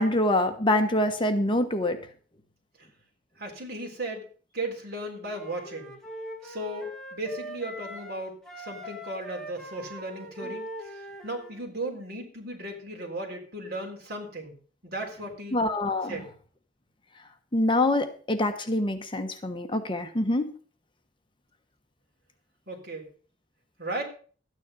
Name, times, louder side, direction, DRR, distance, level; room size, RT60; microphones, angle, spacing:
voice 1, 0.0-2.0 15.5-16.2 17.5-20.5, left 1 dB, 25° left, 7 dB, 1.1 m, -25 dB
voice 2, 3.4-4.2 4.5-5.9 6.4-14.6 14.8-15.6 16.1-16.3 22.7-23.1 23.8-24.0, right 1 dB, 60° right, 2 dB, 3.7 m, -36 dB
Wind instrument woodwind instrument, 5.2-8.2 8.4-11.6, right 1 dB, ahead, 2.1 m, -41 dB
13.0 x 9.6 x 5.3 m, 0.42 s
head